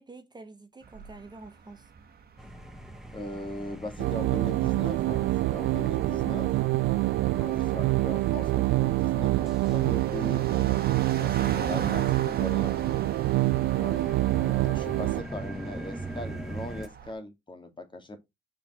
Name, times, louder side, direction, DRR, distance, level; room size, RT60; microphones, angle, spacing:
voice 1, 0.0-1.9 13.7-14.2, right 3 dB, 20° right, 1.2 m, -48 dB
sound 1, 0.8-17.1, right 6 dB, 50° right, 1.7 m, -43 dB
sound 2, 2.4-16.9, right 1 dB, ahead, 1.3 m, -42 dB
voice 2, 3.1-6.5 7.3-10.8 11.2-12.8 13.8-18.2, left 1 dB, 25° left, 2.4 m, -39 dB
sound 3, 4.0-15.2, right 18 dB, 80° right, 0.4 m, -26 dB
6.7 x 5.4 x 4.4 m
cardioid pair, 90°, 20 cm